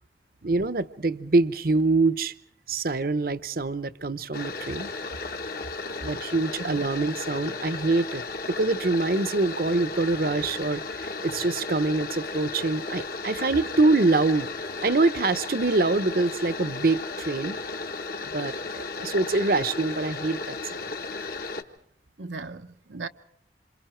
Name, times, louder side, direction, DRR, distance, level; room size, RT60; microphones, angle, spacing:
voice 1, 0.4-2.3 2.7-4.9 5.8-8.2 8.5-14.5 14.8-17.6 18.3-20.6, right 3 dB, 55° right, 0.9 m, -25 dB
sound 1, 4.3-21.6, left 3 dB, 55° left, 1.4 m, -35 dB
voice 2, 6.6-7.1 22.2-23.1, right 3 dB, 85° right, 1.0 m, -38 dB
27.5 x 27.0 x 4.5 m
head